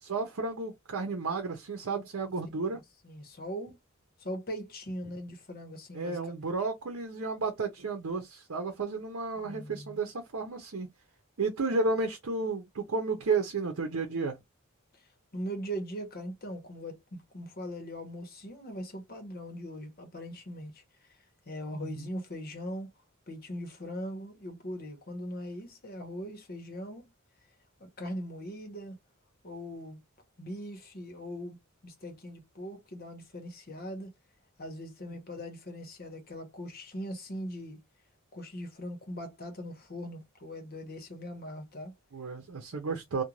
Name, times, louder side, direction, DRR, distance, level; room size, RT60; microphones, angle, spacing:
voice 1, 0.0-2.8 5.9-10.9 11.4-14.4 21.7-22.1 42.1-43.2, right 3 dB, 75° right, 0.7 m, -32 dB
voice 2, 3.0-3.8 4.2-6.3 9.4-10.0 15.3-20.8 21.5-22.9 23.3-27.1 27.8-29.0 29.4-30.0 30.4-31.6 31.8-34.1 34.6-37.8 38.3-41.9, equal, 45° left, 0.9 m, -40 dB
2.5 x 2.2 x 3.0 m
head